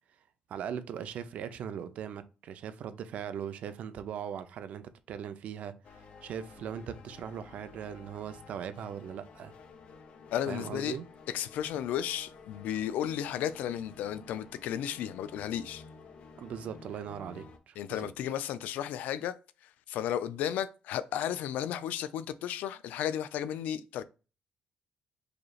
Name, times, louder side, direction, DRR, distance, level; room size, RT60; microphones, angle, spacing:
voice 1, 0.5-9.5 10.5-11.1 16.4-18.1, right 8 dB, 60° right, 0.5 m, -40 dB
sound 1, 5.8-17.6, left 4 dB, 45° left, 0.6 m, -52 dB
voice 2, 10.3-11.0 11.3-15.8 17.8-19.4 19.9-24.0, left 10 dB, 90° left, 0.4 m, -34 dB
4.9 x 3.1 x 2.3 m
cardioid pair, 160°, 3 cm